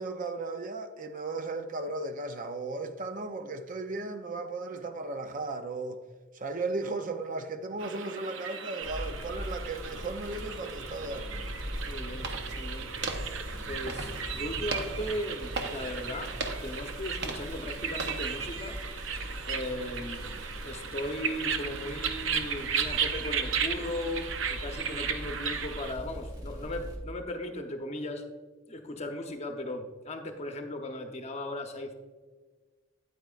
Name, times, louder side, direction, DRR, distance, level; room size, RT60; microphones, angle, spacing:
voice 1, 0.0-6.0 6.3-11.4, right 3 dB, 45° right, 0.5 m, -36 dB
sound 1, 7.8-25.9, right 7 dB, 90° right, 0.6 m, -36 dB
sound 2, 8.8-27.0, equal, 20° right, 1.7 m, -41 dB
sound 3, 11.7-18.2, right 3 dB, 60° right, 0.9 m, -40 dB
voice 2, 11.9-12.9 13.2-13.3 13.7-16.3 16.6-19.2 19.5-28.2 28.7-31.9, left 1 dB, 35° left, 0.9 m, -37 dB
9.1 x 8.9 x 2.4 m
head